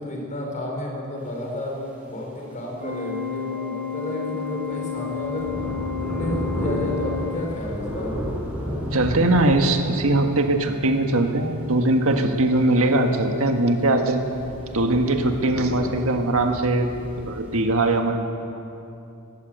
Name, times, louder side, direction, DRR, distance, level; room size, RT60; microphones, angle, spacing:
voice 1, 0.0-1.7 2.1-5.5 5.8-8.3 15.7-16.1, left 1 dB, 35° left, 0 dB, 5.1 m, -31 dB
Organ, 2.8-7.9, left 7 dB, 45° right, 3.9 m, -31 dB
sound 1, 4.3-4.5 4.9-17.6, equal, 5° right, 6.5 m, -34 dB
voice 2, 8.9-14.2 14.7-16.9 17.2-18.2, right 2 dB, 70° right, 4 dB, 1.7 m, -21 dB
18.5 x 17.0 x 8.2 m, 2.7 s
head